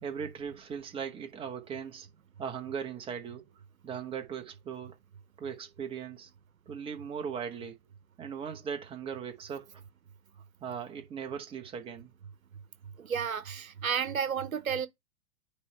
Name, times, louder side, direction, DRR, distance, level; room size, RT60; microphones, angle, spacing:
voice 1, 0.0-2.1 2.4-3.5 3.8-5.0 5.4-6.3 6.7-7.7 8.2-9.8 10.6-12.1, right 7 dB, 15° right, 0.9 m, -38 dB
voice 2, 13.0-14.9, right 7 dB, 80° right, 0.9 m, -32 dB
9.6 x 3.3 x 3.1 m
figure-of-eight pair, 110°, 41 cm